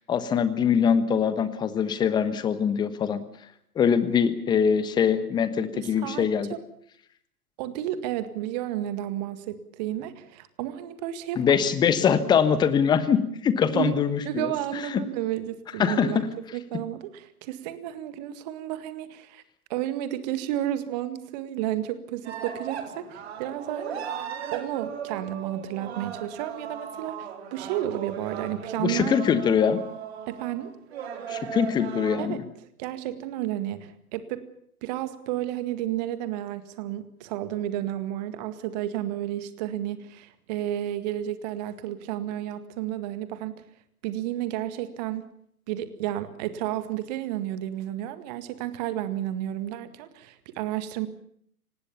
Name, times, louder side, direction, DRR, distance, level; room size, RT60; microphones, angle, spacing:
voice 1, 0.1-3.2 3.8-6.5 11.4-14.5 15.8-16.3 28.8-29.8 31.3-32.4, left 7 dB, 10° left, 13 dB, 1.2 m, -23 dB
voice 2, 5.7-6.6 7.6-11.6 13.7-14.0 14.3-19.4 19.7-24.0 24.5-29.2 30.3-30.7 32.2-32.4 32.8-34.4 34.8-43.6 44.0-45.3 45.7-51.1, right 12 dB, 30° right, 12 dB, 1.9 m, -32 dB
sound 1, 22.2-32.2, right 8 dB, 45° right, 3.8 m, -37 dB
25.5 x 19.5 x 7.1 m, 0.67 s
figure-of-eight pair, 125°, 45 cm